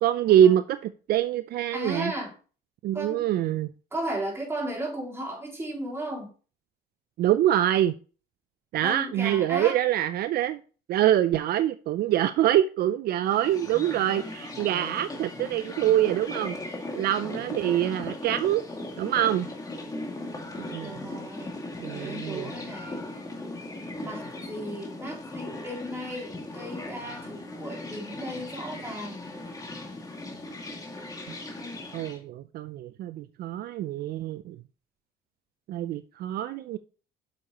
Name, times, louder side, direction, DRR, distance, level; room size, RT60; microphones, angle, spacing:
voice 1, 0.0-2.1 2.8-3.7 7.2-8.0 8.7-10.6 10.9-16.6 16.9-18.6 19.0-19.5 20.6-21.1 21.8-22.5 31.9-34.6 35.7-36.8, right 12 dB, 65° right, 12 dB, 0.5 m, -25 dB
voice 2, 1.7-2.3 2.9-3.3 3.9-6.3 8.8-9.8 20.8-21.6 21.9-23.0 24.0-29.2, right 1 dB, 15° right, -4 dB, 3.7 m, -35 dB
sound 1, 13.2-32.2, left 2 dB, 20° left, 2.2 m, -38 dB
8.4 x 6.5 x 3.0 m, 0.37 s
cardioid pair, 110°, 17 cm